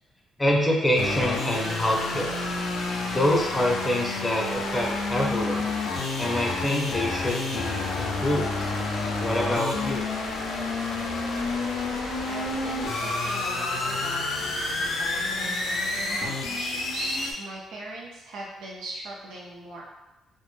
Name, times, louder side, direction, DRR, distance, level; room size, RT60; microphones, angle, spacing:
voice 1, 0.4-2.4 3.1-5.7 6.2-8.5 9.2-10.1, left 1 dB, 15° left, -1 dB, 0.5 m, -26 dB
sound 1, 1.0-17.3, left 3 dB, 85° left, 0.4 m, -29 dB
voice 2, 12.2-19.8, right 1 dB, 85° right, -4 dB, 0.4 m, -39 dB
2.1 x 2.1 x 3.0 m, 0.99 s
cardioid pair, 90°, 0 cm